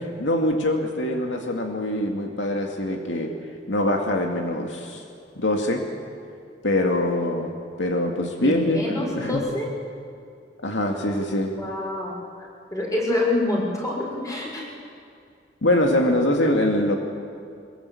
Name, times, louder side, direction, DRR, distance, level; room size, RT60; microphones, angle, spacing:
voice 1, 0.2-3.3 3.7-5.0 5.4-5.8 6.6-7.5 7.8-9.4 10.6-11.5 15.6-17.0, left 1 dB, 85° left, 2 dB, 2.3 m, -23 dB
voice 2, 8.4-9.7 11.6-14.7, left 2 dB, 20° left, -2 dB, 6.0 m, -27 dB
22.5 x 21.5 x 8.6 m, 2.4 s
head